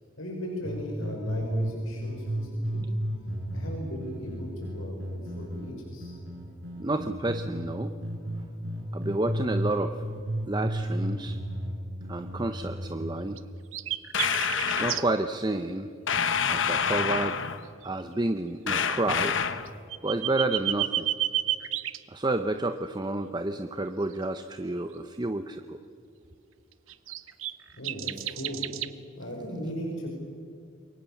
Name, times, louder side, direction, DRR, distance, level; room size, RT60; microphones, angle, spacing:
voice 1, 0.2-2.8 3.5-6.1 27.7-28.6 29.2-30.1, equal, 85° left, 0 dB, 4.9 m, -37 dB
sound 1, 0.6-7.7 8.0-9.8 10.0-13.1, equal, 65° right, 6.2 m, -33 dB
voice 2, 6.8-7.9 8.9-10.0 10.5-11.4 12.1-13.4 14.6-15.9 16.5-17.4 17.8-19.4 20.0-21.1 22.1-25.8, right 2 dB, 20° right, 8 dB, 0.7 m, -30 dB
sound 2, 13.4-13.5 13.7-15.0 17.2-17.5 17.8-17.9 19.7-22.0 26.9-28.9, right 13 dB, 85° right, 0.9 m, -31 dB
sound 3, 14.1-15.0 16.1-17.6 18.7-19.7, left 7 dB, 70° left, 1.2 m, -27 dB
27.5 x 23.0 x 7.2 m, 2.4 s
head